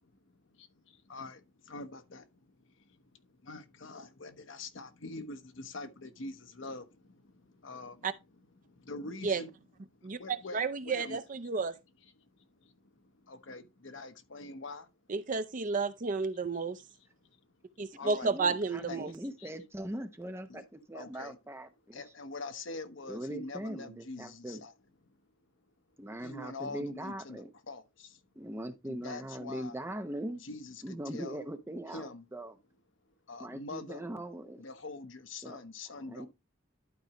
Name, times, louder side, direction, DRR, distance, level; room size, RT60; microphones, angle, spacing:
voice 1, 0.2-8.1 8.6-9.5 9.9-11.2 12.4-14.9 17.2-17.3 17.7-18.6 18.9-19.0 19.4-19.5 20.5-20.6 20.9-21.4 21.9-24.7 25.1-25.2 26.2-28.2 28.9-29.7 30.3-31.4 31.9-32.2 33.3-34.0 34.6-36.3, left 3 dB, 65° left, 1.0 m, -45 dB
voice 2, 10.0-11.7 15.1-16.8 17.8-19.1, right 4 dB, 40° right, 0.5 m, -32 dB
voice 3, 18.0-22.0 23.1-24.6 26.0-27.5 28.4-30.4 30.8-32.6 33.4-34.6 35.4-35.6 36.1-36.3, right 1 dB, 10° right, 0.8 m, -41 dB
11.5 x 4.8 x 3.0 m
head